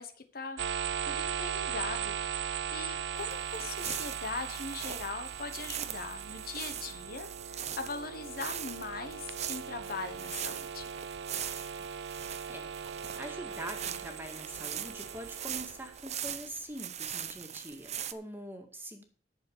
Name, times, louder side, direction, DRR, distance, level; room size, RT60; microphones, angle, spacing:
voice 1, 0.0-10.9, left 4 dB, 55° left, 8 dB, 1.2 m, -41 dB
sound 1, 0.6-16.3, right 7 dB, 75° right, 0.5 m, -39 dB
sound 2, 3.2-18.1, right 9 dB, 40° right, 0.7 m, -41 dB
voice 2, 13.2-19.0, right 1 dB, 10° right, 3 dB, 2.1 m, -44 dB
11.0 x 6.9 x 6.4 m, 0.44 s
head